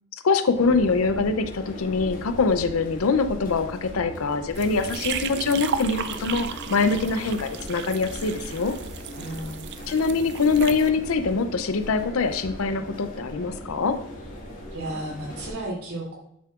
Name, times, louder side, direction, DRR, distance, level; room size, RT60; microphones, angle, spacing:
voice 1, 0.2-8.7 9.9-14.0, left 4 dB, 70° left, 9 dB, 0.5 m, -24 dB
sound 1, 0.5-15.5, equal, 40° left, 1.5 m, -39 dB
sound 2, 4.5-10.9, right 8 dB, 50° right, 0.4 m, -35 dB
voice 2, 9.1-9.6 14.7-16.2, right 1 dB, 85° right, -2 dB, 2.9 m, -33 dB
8.5 x 7.1 x 2.4 m, 0.79 s
head